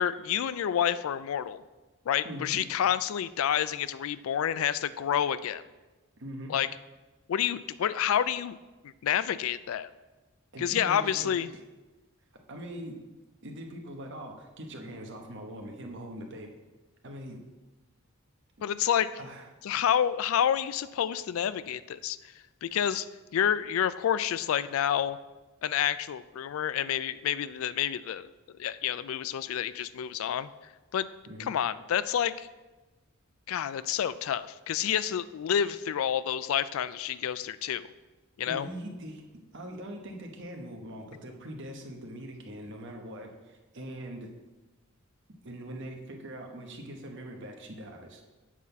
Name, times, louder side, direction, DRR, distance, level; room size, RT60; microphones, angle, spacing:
voice 1, 0.0-1.6 2.1-5.6 6.5-6.7 7.3-8.6 8.8-9.9 10.6-11.5 18.6-19.1 19.6-22.2 22.6-23.1 23.3-25.2 25.6-28.3 28.6-30.5 30.9-31.1 31.4-32.5 33.5-37.9 38.4-38.7, left 9 dB, 70° left, 16 dB, 0.3 m, -29 dB
voice 2, 2.2-2.6 6.2-6.5 10.5-11.4 12.5-13.0 13.4-16.5 17.0-17.4 19.2-19.4 31.3-31.5 38.5-39.2 39.5-44.3 45.4-48.2, equal, 55° right, 2 dB, 1.1 m, -42 dB
7.4 x 4.1 x 6.8 m, 1.2 s
head